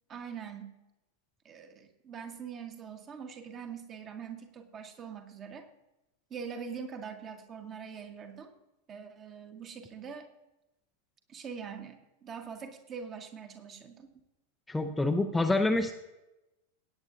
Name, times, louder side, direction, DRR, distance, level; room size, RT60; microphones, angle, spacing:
voice 1, 0.1-0.7 1.4-5.7 6.3-8.5 8.9-10.3 11.3-14.1, right 6 dB, 30° right, 5 dB, 1.5 m, -43 dB
voice 2, 14.7-15.9, left 2 dB, 5° left, 4 dB, 0.7 m, -27 dB
17.5 x 9.3 x 2.6 m, 0.95 s
figure-of-eight pair, 90°, 0 cm